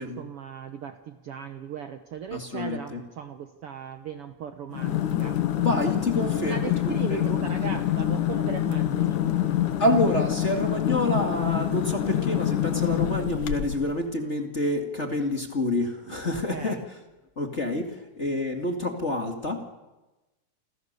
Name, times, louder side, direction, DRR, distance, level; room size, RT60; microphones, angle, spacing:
voice 1, 0.0-5.4 6.4-9.2 16.1-16.8, right 7 dB, 60° right, 8 dB, 1.6 m, -37 dB
voice 2, 2.3-3.0 5.6-7.4 9.8-16.8 17.4-19.7, left 1 dB, 25° left, 3 dB, 2.1 m, -28 dB
sound 1, 4.7-13.9, left 12 dB, 75° left, 2.8 m, -26 dB
29.5 x 26.5 x 6.8 m, 1.1 s
omnidirectional pair, 3.6 m